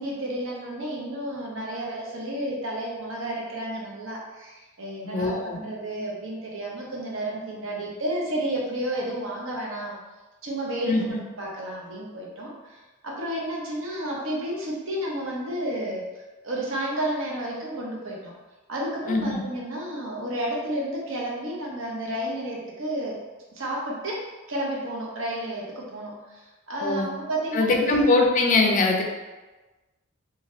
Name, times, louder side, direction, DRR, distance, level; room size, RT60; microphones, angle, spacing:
voice 1, 0.0-10.0 10.4-12.8 13.0-16.1 16.4-18.3 18.7-23.1 23.5-24.2 24.5-28.0, right 1 dB, 65° right, -3 dB, 0.7 m, -31 dB
voice 2, 5.0-5.6 10.9-11.2 19.1-19.4 26.8-27.1 27.5-29.0, left 2 dB, 35° left, 1 dB, 0.4 m, -22 dB
2.6 x 2.3 x 3.1 m, 1.2 s
head